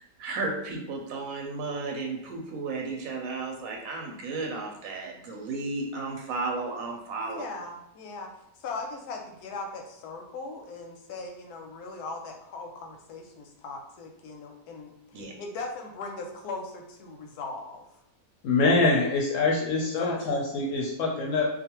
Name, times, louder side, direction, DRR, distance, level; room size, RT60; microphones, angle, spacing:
voice 1, 0.0-7.4 15.1-15.3, right 3 dB, 70° right, 0 dB, 0.9 m, -34 dB
voice 2, 7.2-8.3 8.6-17.8 19.8-20.5, left 3 dB, 90° left, 2 dB, 1.1 m, -39 dB
voice 3, 18.4-21.5, left 3 dB, 70° left, -1 dB, 0.8 m, -24 dB
2.5 x 2.3 x 2.8 m, 0.86 s
omnidirectional pair, 1.6 m